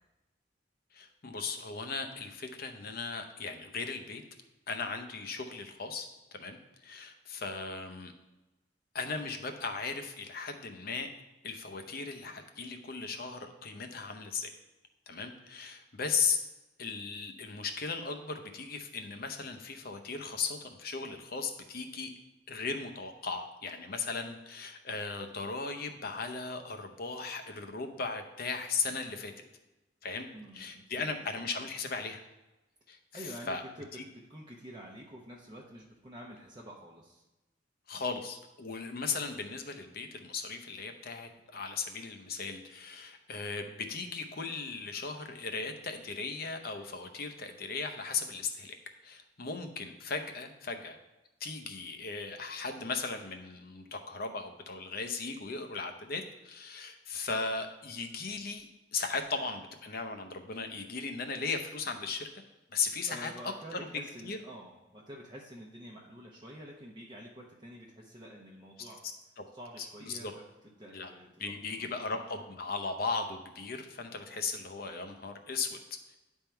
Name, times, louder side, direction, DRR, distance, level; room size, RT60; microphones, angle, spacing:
voice 1, 0.9-4.2 4.7-6.1 6.4-8.1 8.9-11.1 11.4-14.5 15.1-16.4 16.8-22.1 22.5-29.3 30.0-30.3 30.5-32.2 32.9-33.6 33.9-34.0 37.9-48.7 49.0-51.0 51.4-62.3 62.7-63.8 64.2-64.4 69.4-69.5 69.8-70.3 70.9-71.1 71.4-75.8, left 4 dB, 55° left, 6 dB, 0.7 m, -37 dB
voice 2, 30.3-31.2 33.1-33.9 34.3-37.2 63.1-69.0 69.5-70.3 70.8-72.0, equal, 25° right, -2 dB, 0.8 m, -48 dB
10.5 x 3.6 x 4.4 m, 1.0 s
head